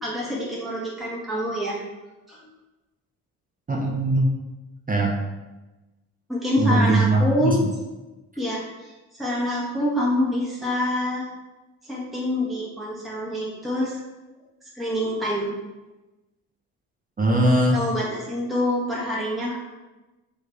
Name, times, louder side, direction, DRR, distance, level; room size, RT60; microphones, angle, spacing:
voice 1, 0.0-1.8 2.3-2.4 6.3-7.6 8.4-11.2 11.8-14.0 14.7-15.5 17.7-19.6, left 1 dB, ahead, -6 dB, 1.2 m, -26 dB
voice 2, 3.7-4.3 4.9-5.1 6.6-7.6 17.2-17.8, right 1 dB, 20° right, -1 dB, 0.6 m, -20 dB
3.1 x 2.7 x 3.4 m, 1.1 s
hypercardioid pair, 45°, 42 cm